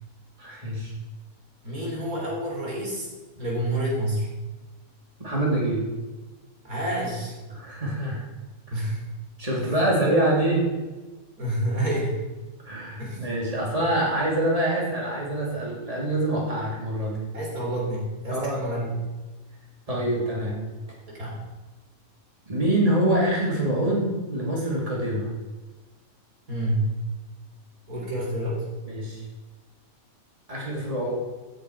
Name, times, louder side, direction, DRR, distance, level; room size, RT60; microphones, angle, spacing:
voice 1, 0.4-0.9 5.2-5.9 7.5-8.2 9.4-10.7 12.6-17.2 18.3-18.8 19.9-20.6 22.5-25.3 28.9-29.2 30.5-31.1, right 1 dB, 25° right, -4 dB, 3.4 m, -25 dB
voice 2, 1.6-3.1 3.4-4.3 6.6-7.4 8.7-9.0 11.4-12.2 13.0-13.2 17.3-19.0 19.9-20.0 21.1-21.4 26.5-26.9 27.9-28.7, right 1 dB, 90° right, -3 dB, 4.1 m, -28 dB
16.0 x 8.4 x 4.8 m, 1.2 s
omnidirectional pair, 1.5 m